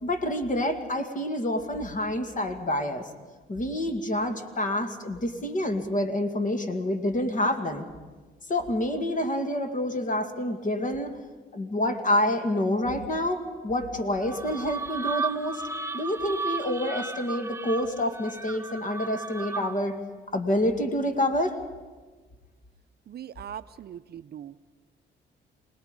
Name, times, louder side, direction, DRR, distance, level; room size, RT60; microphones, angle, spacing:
voice 1, 0.0-3.1 3.5-7.9 8.5-11.1 11.5-15.6 15.9-20.0 20.3-21.6, left 1 dB, 40° left, 6 dB, 2.3 m, -28 dB
sound 1, 14.2-19.9, right 4 dB, 15° right, 0.7 m, -34 dB
voice 2, 23.1-24.6, right 10 dB, 55° right, 13 dB, 0.6 m, -40 dB
27.0 x 19.5 x 5.3 m, 1.4 s
cardioid pair, 90°, 20 cm